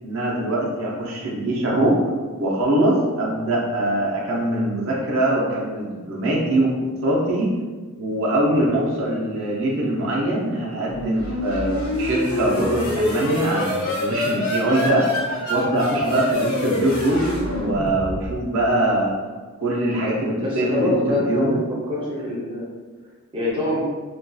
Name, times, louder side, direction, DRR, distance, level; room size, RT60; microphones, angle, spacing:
voice 1, 0.0-2.0 2.3-6.7 7.0-7.5 8.0-15.1 15.5-19.1 19.6-21.6, right 1 dB, 65° right, -3 dB, 0.5 m, -22 dB
sound 1, 10.9-18.5, left 1 dB, 80° left, 0.6 m, -26 dB
voice 2, 20.4-21.6 21.9-22.7 23.3-23.8, left 1 dB, 25° right, -6 dB, 0.6 m, -25 dB
2.5 x 2.3 x 2.2 m, 1.4 s
head